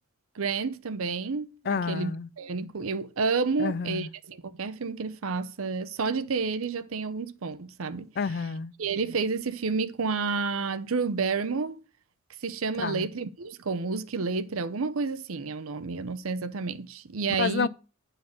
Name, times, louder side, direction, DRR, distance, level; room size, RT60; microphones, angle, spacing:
voice 1, 0.3-8.1 8.8-11.8 12.4-17.7, right 4 dB, 80° right, 0.7 m, -30 dB
voice 2, 1.7-2.3 3.6-4.1 8.2-8.7 12.8-13.1 17.4-17.7, left 5 dB, 50° left, 0.4 m, -29 dB
10.0 x 4.0 x 6.4 m
head